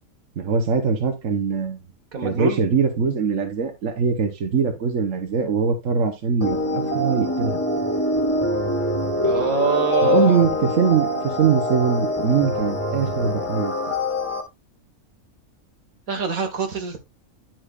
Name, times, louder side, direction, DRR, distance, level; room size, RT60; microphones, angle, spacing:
voice 1, 0.4-1.8 2.2-7.6 10.0-13.7, right 6 dB, 65° right, 5 dB, 1.5 m, -22 dB
voice 2, 2.1-2.6 9.2-10.5 16.1-17.0, right 5 dB, 85° right, 5 dB, 1.9 m, -24 dB
sound 1, 6.4-14.4, left 1 dB, 10° left, 1.4 m, -24 dB
10.5 x 6.0 x 2.4 m, 0.22 s
omnidirectional pair, 1.4 m